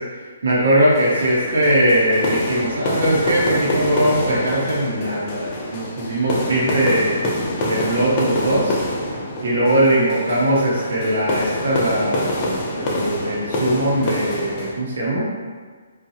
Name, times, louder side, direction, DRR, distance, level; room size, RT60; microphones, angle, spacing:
voice 1, 0.4-7.2 7.6-8.8 9.4-15.3, right 1 dB, 70° right, -7 dB, 0.8 m, -20 dB
sound 1, 0.9-14.7, left 1 dB, 30° left, 0.5 m, -26 dB
2.7 x 2.3 x 2.7 m, 1.5 s
hypercardioid pair, 150°, 0 cm